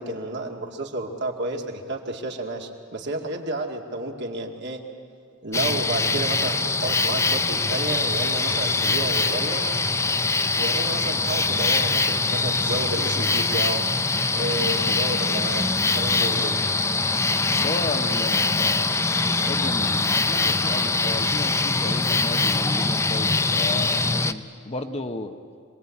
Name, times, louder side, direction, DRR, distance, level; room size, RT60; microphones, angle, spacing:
voice 1, 0.0-4.8 5.4-9.7 10.5-13.9 14.3-15.6 15.9-16.6, right 2 dB, 55° right, 1 dB, 2.3 m, -31 dB
sound 1, 5.5-24.3, left 3 dB, 15° left, 0.6 m, -23 dB
voice 2, 17.5-19.0 19.4-25.3, left 2 dB, 30° left, 7 dB, 1.0 m, -33 dB
26.0 x 20.0 x 8.5 m, 2.2 s
head